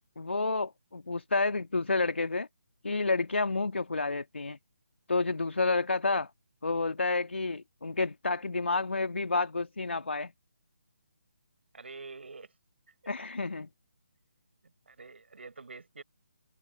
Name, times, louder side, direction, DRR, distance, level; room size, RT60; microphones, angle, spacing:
voice 1, 0.2-2.5 2.8-4.6 5.1-6.3 6.6-10.3 13.1-13.7, left 3 dB, 65° left, 1.8 m, -30 dB
voice 2, 11.7-12.5 14.9-16.0, right 4 dB, 60° right, 5.4 m, -46 dB
figure-of-eight pair, 145°, 7 cm